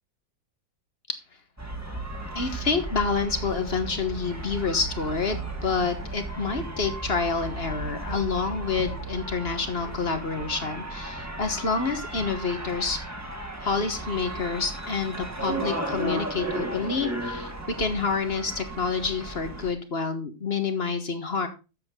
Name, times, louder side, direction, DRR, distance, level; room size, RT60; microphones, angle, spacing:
sound 1, 1.6-19.7, right 2 dB, 10° right, 1.6 m, -35 dB
voice 1, 2.3-13.0 13.6-21.5, left 4 dB, 35° left, 8 dB, 1.4 m, -28 dB
12.0 x 7.6 x 3.7 m, 0.30 s
omnidirectional pair, 2.1 m